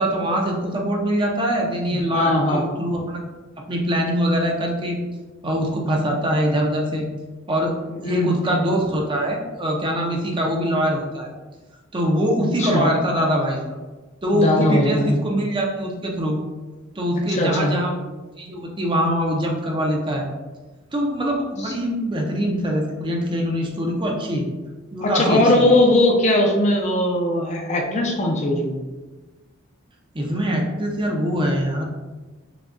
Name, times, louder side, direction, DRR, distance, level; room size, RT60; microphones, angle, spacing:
voice 1, 0.0-3.2 3.7-5.0 5.4-7.1 7.5-7.7 8.0-11.3 11.9-13.6 14.2-16.4 17.0-18.0 18.4-20.3 20.9-24.5 24.9-25.7 30.1-31.8, equal, 25° right, 0 dB, 0.6 m, -23 dB
voice 2, 1.9-2.6 7.9-8.4 12.6-12.9 14.3-15.2 17.3-17.7 21.6-21.7 25.0-28.8, left 1 dB, 35° left, 0 dB, 0.5 m, -19 dB
5.9 x 2.2 x 2.6 m, 1.2 s
head